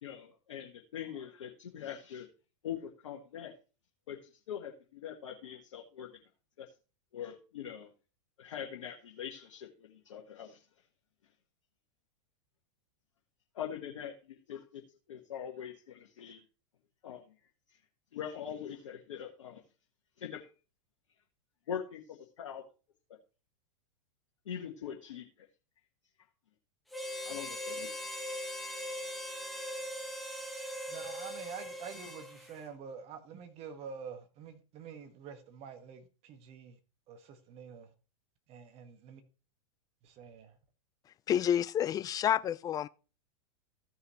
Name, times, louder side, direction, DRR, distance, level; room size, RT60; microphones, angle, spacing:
voice 1, 0.0-2.3 2.6-3.6 4.1-6.1 6.6-6.7 7.1-7.9 8.4-10.6 13.5-14.8 15.1-16.4 17.0-17.2 18.1-19.6 20.2-20.5 21.7-22.6 24.4-25.5 27.2-27.9, left 9 dB, 70° left, 1.5 m, -42 dB
Harmonica, 26.9-32.6, equal, ahead, 1.5 m, -40 dB
voice 2, 30.9-36.8 37.1-37.9 38.5-39.2 40.0-40.5, right 6 dB, 40° right, 1.6 m, -47 dB
voice 3, 41.3-42.9, left 10 dB, 20° left, 0.4 m, -29 dB
15.5 x 5.6 x 3.1 m
hypercardioid pair, 100°, 16 cm